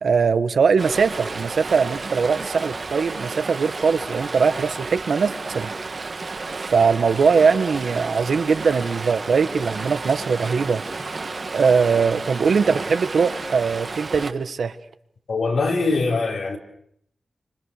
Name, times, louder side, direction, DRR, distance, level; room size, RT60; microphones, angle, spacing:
voice 1, 0.0-5.7 6.7-10.8 11.5-14.8, right 5 dB, 75° right, 1.5 m, -21 dB
Stream, 0.8-14.3, right 3 dB, 45° right, 1.7 m, -32 dB
voice 2, 15.3-16.6, left 3 dB, 75° left, 4.4 m, -22 dB
29.0 x 26.0 x 6.7 m
wide cardioid pair, 150°, 0 cm